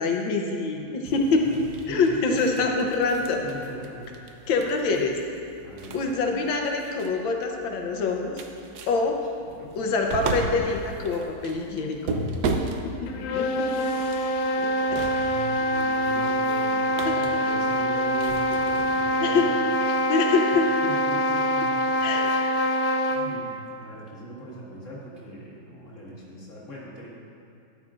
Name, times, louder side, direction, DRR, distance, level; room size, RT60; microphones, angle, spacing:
voice 1, 0.0-1.4 1.9-3.4 4.5-5.2 5.9-8.4 8.9-9.1 9.7-12.2 13.3-13.8 17.1-17.2 17.4-17.5 19.2-19.5 19.9-20.7 22.0-22.3, left 4 dB, 70° left, 2 dB, 1.4 m, -25 dB
sound 1, 1.1-19.0, right 3 dB, 70° right, 1.0 m, -36 dB
voice 2, 1.9-2.5 3.4-4.5 5.6-6.0 9.4-9.7 13.6-14.3 14.9-19.5 20.8-22.1 23.1-27.1, equal, 40° left, -6 dB, 1.9 m, -40 dB
sound 2, 13.1-23.4, equal, 85° left, 1.5 m, -25 dB
13.0 x 9.9 x 2.5 m, 2.5 s
omnidirectional pair, 2.3 m